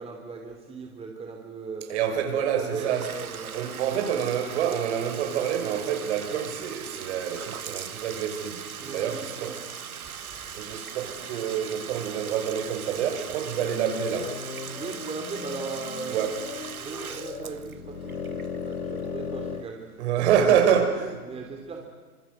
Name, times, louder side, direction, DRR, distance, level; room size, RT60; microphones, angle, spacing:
voice 1, 0.0-1.9 2.2-4.3 8.8-9.6 14.7-16.3 16.8-20.7 21.2-21.8, right 4 dB, 15° right, 1 dB, 3.2 m, -38 dB
voice 2, 1.9-3.0 3.5-9.5 10.5-14.4 16.1-16.4 20.0-21.2, right 8 dB, 50° right, 5 dB, 6.4 m, -27 dB
Bathtub (filling or washing), 2.6-19.4, right 7 dB, 75° right, 1.6 m, -40 dB
sound 1, 13.5-19.7, left 6 dB, 80° left, 1.7 m, -37 dB
27.0 x 26.0 x 8.1 m, 1.4 s
figure-of-eight pair, 115°, 44 cm